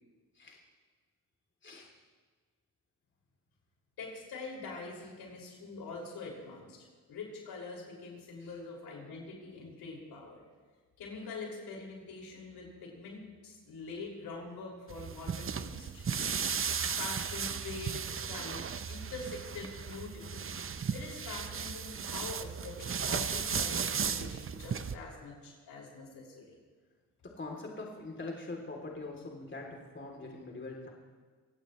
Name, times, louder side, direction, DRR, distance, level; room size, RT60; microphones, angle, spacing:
voice 1, 1.6-1.9 8.4-8.5 16.0-16.3 27.2-30.9, left 2 dB, 30° left, -1 dB, 3.3 m, -43 dB
voice 2, 4.0-6.8 7.1-10.4 11.0-16.1 17.0-20.6 20.9-26.6, left 3 dB, 75° left, -2 dB, 6.1 m, -44 dB
sound 1, 14.9-25.0, right 6 dB, 35° right, 0.8 m, -35 dB
26.0 x 17.0 x 3.2 m, 1.5 s
supercardioid pair, 60°, 39 cm